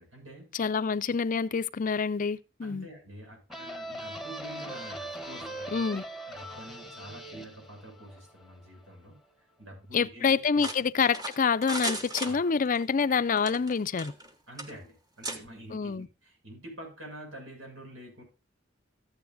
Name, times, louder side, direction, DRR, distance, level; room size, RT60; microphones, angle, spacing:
voice 1, 0.0-0.5 2.6-9.2 9.6-10.6 12.2-12.5 14.5-18.2, right 1 dB, 90° right, 7.1 m, -47 dB
voice 2, 0.5-2.9 5.7-6.0 9.9-14.1 15.7-16.1, left 5 dB, 45° left, 0.5 m, -27 dB
sound 1, 3.5-8.9, right 1 dB, ahead, 1.1 m, -41 dB
sound 2, 10.6-12.8 13.4-14.3 14.6-14.7 15.2-15.4, right 1 dB, 20° right, 1.3 m, -36 dB
14.5 x 9.5 x 2.5 m
head